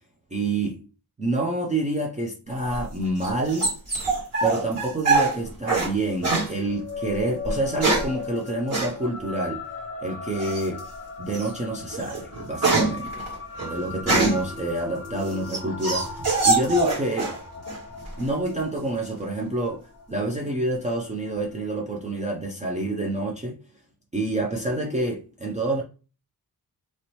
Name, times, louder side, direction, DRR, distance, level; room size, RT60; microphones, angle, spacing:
voice 1, 0.3-0.8 1.2-3.7 4.4-9.6 10.0-10.8 11.2-13.2 13.7-16.1 16.4-17.3 18.2-19.8 20.1-23.6 24.1-25.8, right 2 dB, 20° right, 0.4 m, -27 dB
sound 1, 2.6-5.9 6.2-6.5 7.4-8.2 8.7-8.9 10.4-10.8 11.3-11.5 11.9-14.5 15.1-17.4 17.7-18.3, right 3 dB, 45° right, 1.6 m, -24 dB
sound 2, 6.6-21.4, left 4 dB, 40° left, 0.5 m, -38 dB
3.0 x 2.8 x 3.0 m
wide cardioid pair, 175°, 36 cm